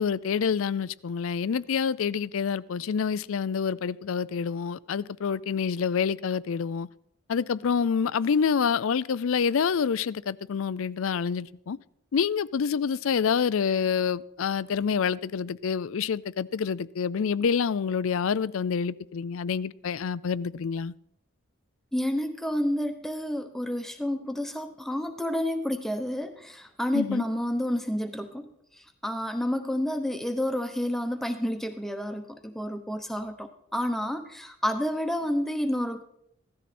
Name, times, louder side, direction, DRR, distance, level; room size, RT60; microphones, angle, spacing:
voice 1, 0.0-6.9 7.3-11.8 12.1-20.9 26.9-27.2, left 6 dB, 65° left, 0.4 m, -27 dB
voice 2, 21.9-28.5 29.0-36.0, left 1 dB, ahead, 0.9 m, -30 dB
16.5 x 13.5 x 4.3 m
head